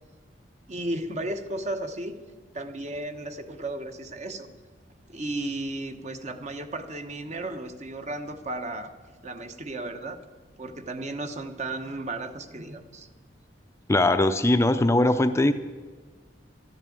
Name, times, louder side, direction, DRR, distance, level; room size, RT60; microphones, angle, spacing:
voice 1, 0.7-2.1 2.5-4.5 5.1-8.9 9.2-10.2 10.6-13.1, right 2 dB, 40° right, 8 dB, 1.1 m, -34 dB
voice 2, 13.9-15.5, left 1 dB, 15° left, 9 dB, 0.5 m, -20 dB
12.5 x 11.0 x 8.5 m, 1.4 s
head